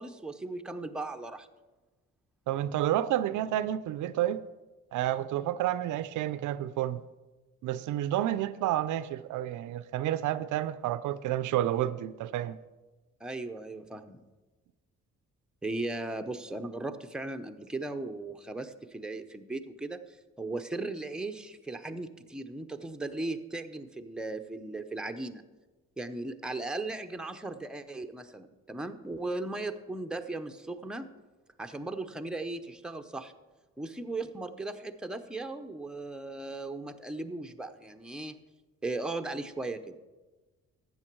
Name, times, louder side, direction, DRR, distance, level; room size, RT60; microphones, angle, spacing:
voice 1, 0.0-1.5 13.2-14.2 15.6-25.4 26.0-31.1 31.6-33.3 33.8-38.4 38.8-40.0, right 2 dB, 5° right, 0.7 m, -37 dB
voice 2, 2.5-4.4 4.9-7.0 7.6-12.6, right 12 dB, 80° right, 0.5 m, -30 dB
12.5 x 8.1 x 4.6 m
cardioid pair, 90°, 30 cm